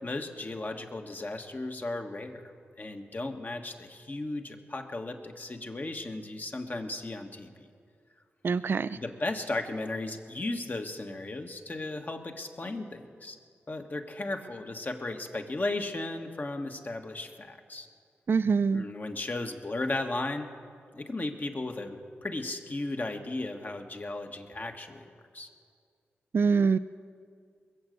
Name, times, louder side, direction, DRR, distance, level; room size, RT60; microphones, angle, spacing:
voice 1, 0.0-2.4 2.8-7.6 8.9-13.4 13.7-17.9 18.7-20.5 20.9-25.5, left 2 dB, 40° left, 5 dB, 1.6 m, -35 dB
voice 2, 8.4-9.0 18.3-18.8 26.3-26.8, right 5 dB, 50° right, 13 dB, 0.4 m, -24 dB
21.5 x 7.5 x 7.9 m, 2.2 s
supercardioid pair, 40°, 5 cm